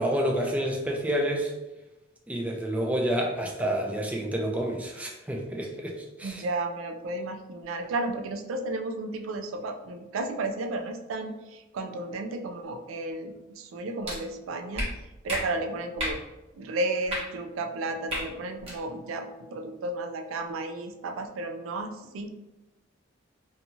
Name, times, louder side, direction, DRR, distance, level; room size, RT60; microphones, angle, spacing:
voice 1, 0.0-1.5 2.3-6.4, right 1 dB, 5° right, 0 dB, 0.3 m, -29 dB
voice 2, 6.2-14.9 15.2-16.2 16.6-22.3, right 2 dB, 90° right, 5 dB, 0.3 m, -33 dB
sound 1, 14.0-14.2 14.7-14.9 15.3-15.4 16.0-16.2 17.0-17.2 18.1-18.2 18.6-18.8, equal, 30° right, 1.0 m, -30 dB
2.7 x 2.3 x 2.8 m, 1.0 s
head